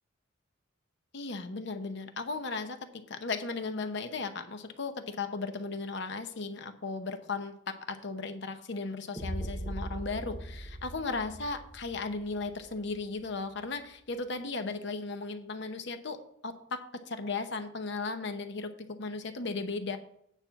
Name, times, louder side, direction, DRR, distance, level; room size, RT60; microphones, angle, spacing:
voice 1, 1.1-2.8 3.1-20.0, left 3 dB, 60° left, 8 dB, 0.8 m, -36 dB
sound 1, 9.2-13.2, right 1 dB, 5° left, 1.3 m, -40 dB
9.1 x 4.4 x 6.9 m, 0.72 s
head